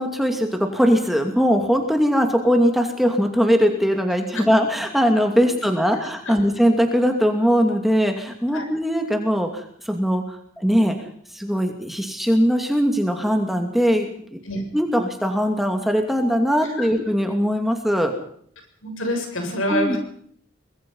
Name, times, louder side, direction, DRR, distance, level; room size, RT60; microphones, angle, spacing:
voice 1, 0.0-10.9 11.3-14.4 14.7-18.2 19.7-20.0, equal, ahead, 4 dB, 2.5 m, -20 dB
voice 2, 18.8-20.0, left 1 dB, 80° left, 4 dB, 7.1 m, -26 dB
24.5 x 20.5 x 5.6 m, 0.63 s
head